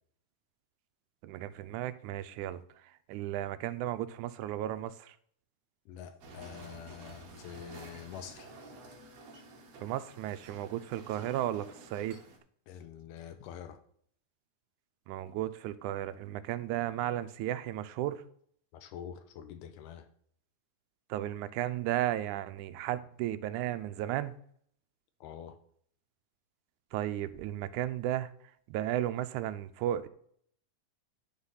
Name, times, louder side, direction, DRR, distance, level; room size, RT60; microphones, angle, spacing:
voice 1, 1.2-2.6 3.1-5.2 9.8-12.2 15.1-18.2 21.1-24.3 26.9-28.3 28.7-30.1, right 13 dB, 80° right, 1.9 m, -34 dB
voice 2, 5.9-8.5 12.7-13.8 18.7-20.1 25.2-25.6, left 9 dB, 90° left, 2.3 m, -46 dB
sound 1, 6.2-12.4, right 2 dB, 55° right, 2.3 m, -51 dB
11.5 x 3.9 x 5.6 m
omnidirectional pair, 3.7 m